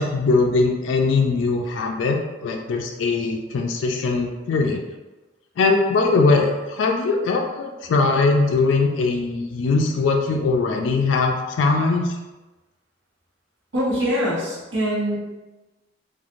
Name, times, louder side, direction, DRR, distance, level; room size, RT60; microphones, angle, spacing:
voice 1, 0.0-4.8 5.6-12.1, left 3 dB, 70° left, 2 dB, 0.3 m, -21 dB
voice 2, 13.7-15.2, equal, 75° right, -6 dB, 1.0 m, -23 dB
3.0 x 2.4 x 2.5 m, 1.1 s
head